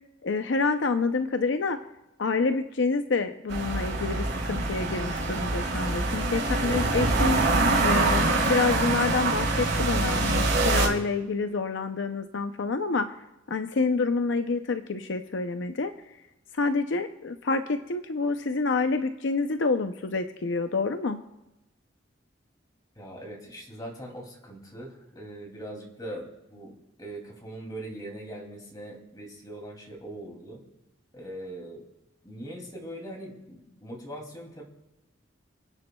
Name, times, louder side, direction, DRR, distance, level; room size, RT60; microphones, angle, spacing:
voice 1, 0.2-1.8 2.2-7.4 7.8-13.1 13.5-15.9 16.5-21.2, left 4 dB, 70° left, 8 dB, 0.6 m, -27 dB
sound 1, 3.5-10.9, right 2 dB, 80° right, 4.3 m, -25 dB
voice 2, 6.4-7.3 23.0-26.7 27.0-30.6 31.1-31.8 32.2-34.6, right 1 dB, 20° left, 0 dB, 2.7 m, -41 dB
28.5 x 9.7 x 2.3 m, 0.97 s
head